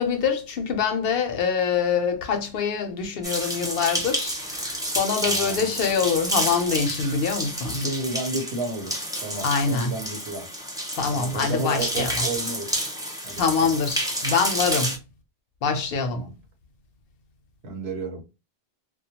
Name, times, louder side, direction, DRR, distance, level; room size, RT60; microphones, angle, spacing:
voice 1, 0.0-7.9 9.4-9.9 10.9-12.2 13.4-14.9 15.6-16.2, left 5 dB, 70° left, 0.7 m, -25 dB
sound 1, 3.2-15.0, right 1 dB, 5° right, 0.3 m, -30 dB
voice 2, 5.2-5.7 7.7-10.5 11.1-12.7 13.2-13.7 16.1-16.3 17.6-18.2, right 2 dB, 80° right, 1.0 m, -32 dB
2.2 x 2.2 x 2.7 m
omnidirectional pair, 1.1 m